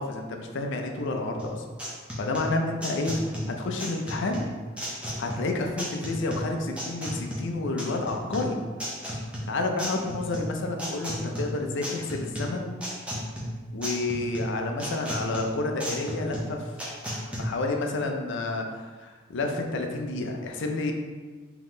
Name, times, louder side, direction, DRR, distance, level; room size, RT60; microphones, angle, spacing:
voice 1, 0.0-1.6 2.2-3.2 3.5-4.5 5.2-8.6 9.5-12.7 13.7-16.7 17.1-20.9, left 2 dB, 60° left, 3 dB, 0.5 m, -30 dB
sound 1, 1.4-17.4, equal, 5° right, 0.6 m, -35 dB
3.8 x 2.9 x 3.6 m, 1.4 s
head